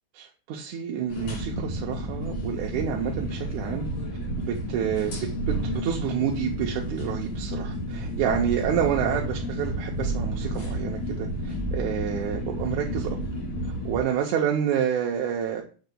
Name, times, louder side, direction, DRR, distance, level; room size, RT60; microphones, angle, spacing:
voice 1, 0.2-3.9 4.4-5.1 5.5-13.2 13.9-15.6, right 8 dB, 85° right, 0 dB, 2.1 m, -28 dB
sound 1, 1.1-14.0, right 1 dB, 90° left, 4.0 m, -31 dB
6.7 x 6.6 x 2.2 m, 0.38 s
omnidirectional pair, 3.4 m